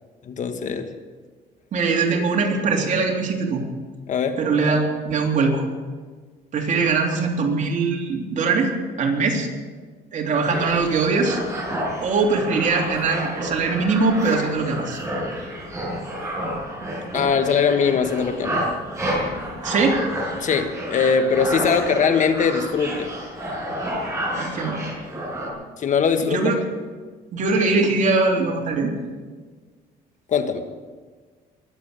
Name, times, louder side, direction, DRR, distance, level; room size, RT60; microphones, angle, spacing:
voice 1, 0.2-0.9 4.1-4.4 17.1-18.7 19.6-19.7 20.4-23.1 25.8-26.6 30.3-30.6, left 6 dB, 45° left, 8 dB, 1.5 m, -21 dB
voice 2, 1.7-3.6 4.4-5.6 6.5-8.7 9.0-9.5 10.1-11.4 12.0-15.0 19.6-20.0 24.4-24.8 26.2-26.6 27.3-28.9, right 4 dB, 50° right, 1 dB, 3.3 m, -21 dB
sound 1, 10.4-25.5, equal, 15° right, 5.9 m, -30 dB
22.5 x 8.2 x 6.8 m, 1.5 s
cardioid pair, 110°, 17 cm